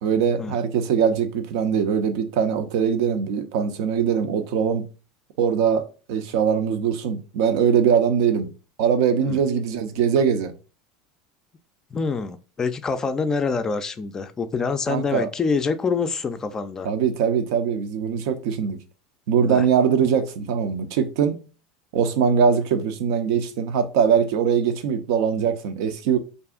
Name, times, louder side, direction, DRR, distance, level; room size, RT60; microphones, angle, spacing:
voice 1, 0.0-4.8 5.4-8.5 8.8-10.5 14.9-15.3 16.8-18.8 19.3-21.4 21.9-26.2, right 7 dB, 65° right, 0.5 m, -22 dB
voice 2, 11.9-16.9 19.5-19.7, left 4 dB, 25° left, 0.4 m, -26 dB
2.6 x 2.3 x 3.6 m
hypercardioid pair, 85°, 2 cm